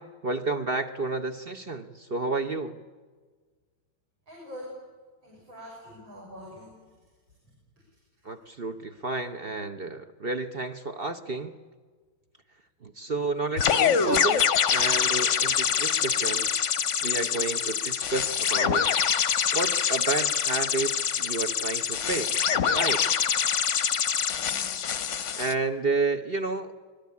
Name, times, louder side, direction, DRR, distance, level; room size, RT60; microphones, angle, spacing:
voice 1, 0.0-2.8 8.2-11.5 12.8-14.4 14.7-16.5 17.0-18.8 19.5-22.4 22.7-23.0 25.4-26.7, right 3 dB, 45° right, 8 dB, 0.8 m, -31 dB
voice 2, 4.3-4.8 5.2-6.8 24.5-24.7, left 1 dB, 75° right, -4 dB, 7.0 m, -44 dB
sound 1, 13.6-25.5, left 7 dB, 50° left, 1.0 m, -25 dB
26.5 x 20.5 x 8.4 m, 1.5 s
omnidirectional pair, 2.2 m